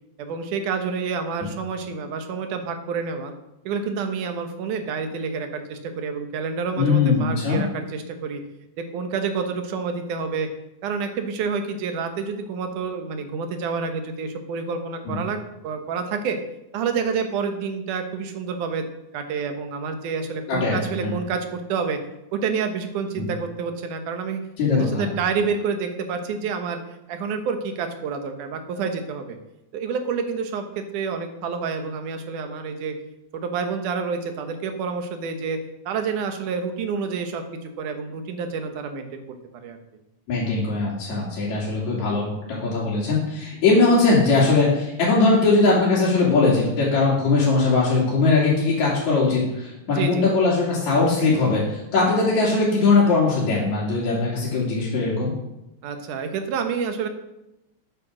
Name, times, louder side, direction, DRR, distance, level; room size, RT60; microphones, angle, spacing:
voice 1, 0.2-3.3 3.7-8.4 8.8-10.5 10.8-16.4 16.7-18.9 19.1-22.0 22.3-24.4 24.8-26.8 27.1-29.4 29.7-32.9 33.3-35.6 35.9-39.2 39.5-39.8 49.9-50.3 55.8-57.1, right 5 dB, 90° right, 6 dB, 2.7 m, -28 dB
voice 2, 6.8-7.6 15.1-15.2 20.5-21.1 23.2-23.3 24.6-25.1 40.3-55.3, left 3 dB, 65° left, -6 dB, 3.8 m, -20 dB
9.4 x 8.7 x 6.3 m, 0.91 s
omnidirectional pair, 3.4 m